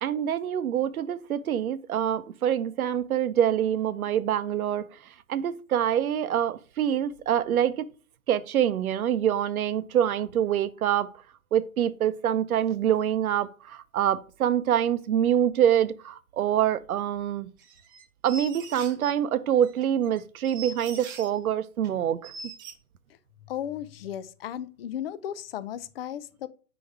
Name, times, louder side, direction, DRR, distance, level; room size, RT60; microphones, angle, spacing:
voice 1, 0.0-4.9 5.3-7.9 8.3-11.1 11.5-17.5 18.2-22.3, right 10 dB, 80° right, 0.7 m, -25 dB
sound 1, 17.6-19.1 19.6-21.4 21.8-21.9 22.2-22.7, right 4 dB, 15° right, 0.4 m, -42 dB
voice 2, 23.5-26.5, left 10 dB, 45° left, 0.5 m, -35 dB
5.0 x 4.0 x 4.7 m
hypercardioid pair, 130°, 43 cm